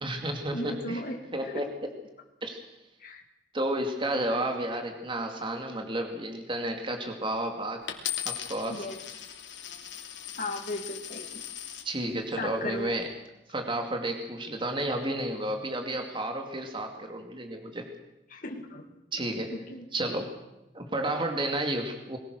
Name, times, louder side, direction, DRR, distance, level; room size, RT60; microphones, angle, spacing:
voice 1, 0.0-1.0 1.3-1.8 2.4-2.6 3.5-7.8 8.2-8.9 11.8-13.1 13.5-17.9 19.1-19.5 19.9-20.3 20.7-22.2, right 1 dB, 30° right, 4 dB, 2.4 m, -31 dB
voice 2, 0.5-1.2 1.5-1.6 3.0-3.2 8.7-9.0 10.4-11.4 12.4-12.9 18.3-18.9 19.5-19.8, left 1 dB, 50° left, 3 dB, 2.5 m, -36 dB
Coin (dropping), 7.9-11.9 12.6-13.0, left 10 dB, 85° left, 2.9 m, -38 dB
22.0 x 19.5 x 6.4 m, 0.94 s
head